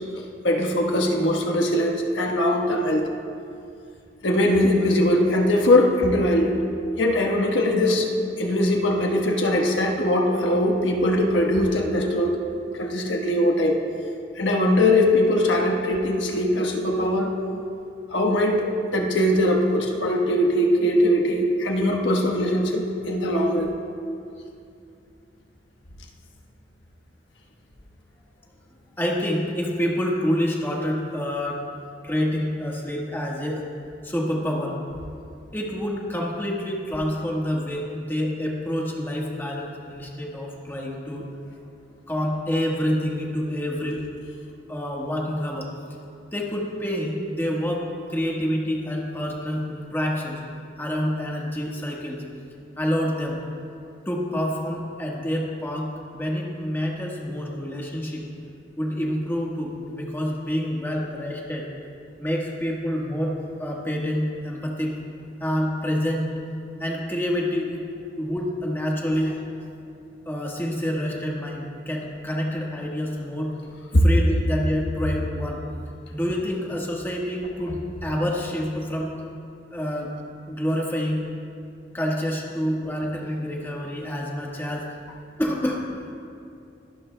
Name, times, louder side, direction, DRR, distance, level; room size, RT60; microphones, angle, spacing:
voice 1, 0.4-3.1 4.2-6.6 7.0-8.1 8.4-12.4 12.7-13.8 14.4-17.3 18.1-23.7 73.9-74.0, left 1 dB, 90° left, 1 dB, 1.3 m, -21 dB
voice 2, 29.0-31.6 32.0-33.6 34.0-34.8 35.5-41.3 42.1-44.0 44.7-45.7 46.3-50.4 50.8-52.2 52.8-53.4 54.0-58.2 58.8-61.7 62.2-64.9 65.4-66.3 66.8-67.8 68.2-69.4 70.2-73.5 74.0-75.6 76.1-79.1 79.7-80.1 80.5-81.3 81.9-84.9 85.4-85.9, equal, 10° left, -2 dB, 1.4 m, -27 dB
22.0 x 12.0 x 2.2 m, 2.5 s
head